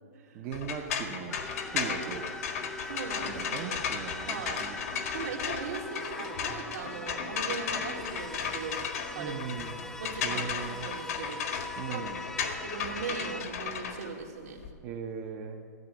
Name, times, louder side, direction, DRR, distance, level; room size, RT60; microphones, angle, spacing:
voice 1, 0.3-1.4 1.7-2.2 3.4-4.7 9.2-9.9 10.2-10.9 11.8-12.2 14.8-15.6, right 6 dB, 35° right, 1 dB, 0.9 m, -38 dB
sound 1, 0.5-14.7, left 6 dB, 65° left, 1.7 m, -35 dB
sound 2, 1.3-13.4, left 2 dB, 5° left, 0.5 m, -42 dB
voice 2, 1.8-2.3 2.8-3.8 4.2-4.7 5.1-8.8 9.1-9.4 10.0-12.1 12.4-14.7, right 5 dB, 70° right, 0 dB, 2.3 m, -40 dB
14.0 x 8.9 x 6.2 m, 2.4 s
hypercardioid pair, 135°, 9 cm